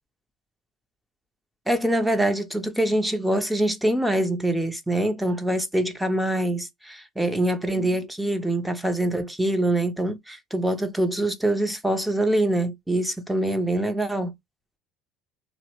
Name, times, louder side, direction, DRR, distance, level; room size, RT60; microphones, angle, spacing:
voice 1, 1.7-14.3, right 1 dB, 5° right, 0.6 m, -24 dB
2.7 x 2.0 x 2.9 m
supercardioid pair, 85°, 0 cm